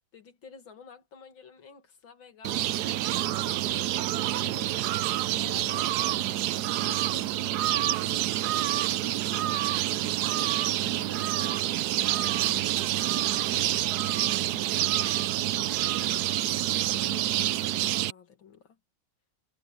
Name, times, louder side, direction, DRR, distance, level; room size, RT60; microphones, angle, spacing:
voice 1, 0.1-5.9 6.3-11.6 12.2-13.3 15.6-16.3 16.6-18.8, left 7 dB, 70° left, 2.9 m, -51 dB
sound 1, 2.4-18.1, right 14 dB, 75° right, 0.9 m, -27 dB
voice 2, 5.3-6.2 13.2-14.6, left 4 dB, 40° left, 1.2 m, -49 dB
omnidirectional pair, 2.2 m